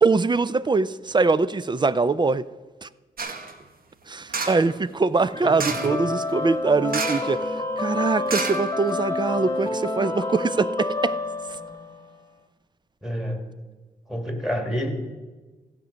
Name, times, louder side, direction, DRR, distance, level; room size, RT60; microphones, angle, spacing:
voice 1, 0.0-2.4 2.8-2.9 4.1-11.2, right 4 dB, 25° right, 17 dB, 0.4 m, -23 dB
sound 1, 3.2-3.5 4.3-4.7 5.6-6.0 6.9-7.4 7.6-7.7 8.3-9.1 9.6-9.7, right 4 dB, 55° right, 1.3 m, -30 dB
sound 2, 5.2-12.1, left 2 dB, 20° left, 1.4 m, -29 dB
voice 2, 5.4-6.0 13.0-13.4 14.1-14.9, equal, ahead, 4 dB, 2.4 m, -29 dB
15.5 x 5.2 x 6.9 m, 1.2 s
supercardioid pair, 55°, 18 cm